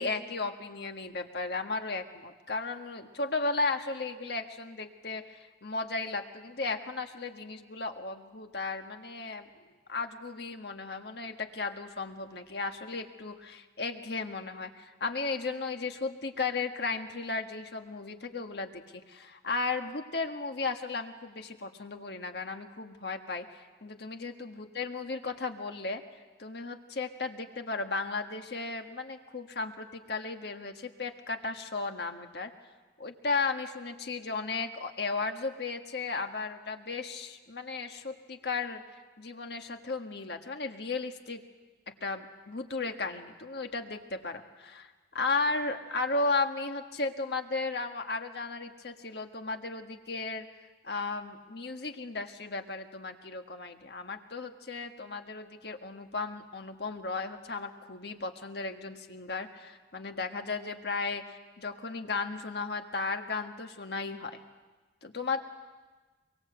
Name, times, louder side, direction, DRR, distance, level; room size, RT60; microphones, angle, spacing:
voice 1, 0.0-9.5 9.9-23.5 23.8-26.0 26.4-32.5 33.0-38.8 39.2-41.4 42.0-44.9 45.1-50.5 50.8-61.2 61.6-64.4 65.0-65.4, left 3 dB, 60° left, 5 dB, 1.6 m, -35 dB
24.5 x 23.0 x 7.9 m, 1.3 s
head